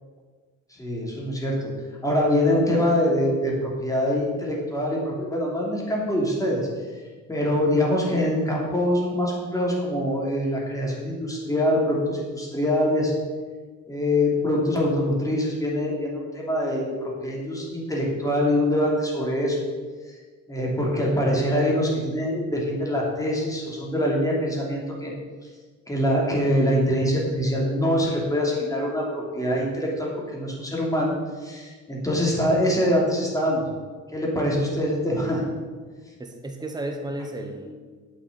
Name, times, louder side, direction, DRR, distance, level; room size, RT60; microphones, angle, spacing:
voice 1, 0.8-1.7 2.0-6.6 7.3-13.1 13.9-19.6 20.0-20.1 20.5-25.1 25.9-33.7 34.1-35.4, left 1 dB, 10° left, -3 dB, 3.0 m, -24 dB
voice 2, 36.2-37.9, right 1 dB, 15° right, 4 dB, 1.1 m, -33 dB
8.3 x 6.6 x 8.2 m, 1.5 s
cardioid pair, 115°, 31 cm